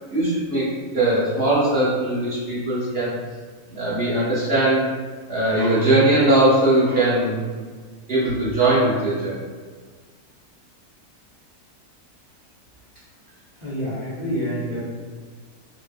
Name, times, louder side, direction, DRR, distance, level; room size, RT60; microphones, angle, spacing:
voice 1, 0.1-0.7 0.9-3.1 3.7-4.9 5.3-7.6 8.1-9.4, right 1 dB, 45° right, -8 dB, 0.9 m, -20 dB
voice 2, 13.6-14.8, equal, 40° left, -9 dB, 0.7 m, -27 dB
2.9 x 2.7 x 3.3 m, 1.5 s
omnidirectional pair, 1.6 m